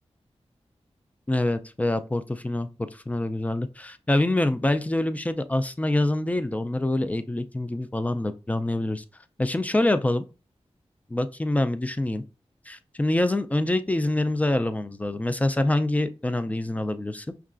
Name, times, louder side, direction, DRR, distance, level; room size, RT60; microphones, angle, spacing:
voice 1, 1.3-9.0 9.4-10.2 11.1-12.2 12.7-17.3, left 1 dB, 10° left, 0.3 m, -25 dB
5.5 x 2.3 x 2.4 m
wide cardioid pair, 75°, 12 cm